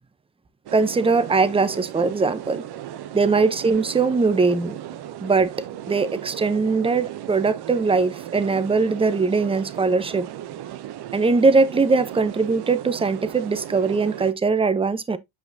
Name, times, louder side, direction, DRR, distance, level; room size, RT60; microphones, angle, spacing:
voice 1, 0.7-2.6 3.1-4.8 5.2-5.5 5.9-10.3 11.1-15.2, right 4 dB, 10° right, 0.7 m, -21 dB
sound 1, 0.7-14.3, right 12 dB, 55° right, 0.7 m, -36 dB
8.1 x 4.8 x 2.7 m
cardioid pair, 110°, 46 cm